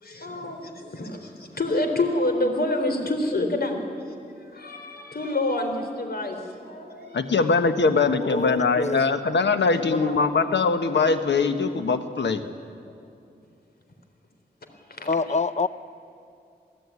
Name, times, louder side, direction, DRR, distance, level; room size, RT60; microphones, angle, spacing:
voice 1, 0.0-3.8 4.1-7.4 7.9-8.2 9.3-9.4 9.7-10.1 14.9-15.1, left 2 dB, 60° left, 5 dB, 3.8 m, -28 dB
voice 2, 7.1-12.4, left 4 dB, 90° left, 8 dB, 1.5 m, -22 dB
voice 3, 8.2-9.1 15.0-15.7, left 3 dB, 40° left, 14 dB, 0.8 m, -26 dB
27.5 x 16.5 x 9.7 m, 2.6 s
wide cardioid pair, 70°, 18 cm